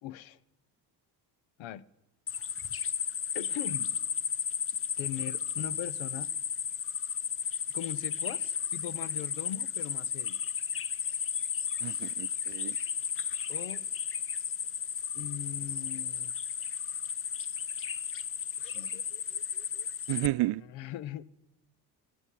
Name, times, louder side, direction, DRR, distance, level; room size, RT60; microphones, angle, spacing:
voice 1, 0.0-0.4 1.6-1.8 3.3-3.9 5.0-6.3 7.7-10.4 13.5-13.8 15.1-16.3 18.6-19.0 20.3-21.2, left 12 dB, 75° left, 0.9 m, -40 dB
sound 1, 2.3-20.3, left 7 dB, 30° left, 0.6 m, -34 dB
voice 2, 11.8-12.8 20.1-20.6, right 18 dB, 60° right, 0.5 m, -31 dB
18.0 x 9.7 x 7.6 m
supercardioid pair, 65°, 46 cm